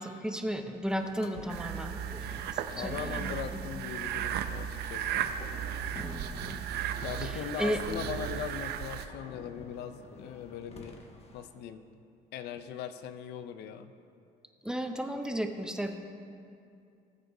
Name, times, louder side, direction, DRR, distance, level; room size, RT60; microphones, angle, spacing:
voice 1, 0.0-3.4 3.8-3.9 6.0-6.6 7.2-7.8 14.6-16.0, equal, 5° right, 5 dB, 0.7 m, -35 dB
sound 1, 0.9-11.5, left 2 dB, 40° left, 1.1 m, -50 dB
sound 2, 1.5-9.1, right 9 dB, 75° right, 0.6 m, -35 dB
voice 2, 2.7-5.3 7.0-11.0 11.3-11.9 12.3-13.9, left 8 dB, 80° left, 10 dB, 0.6 m, -40 dB
19.5 x 8.0 x 2.7 m, 2.5 s
cardioid pair, 110°, 17 cm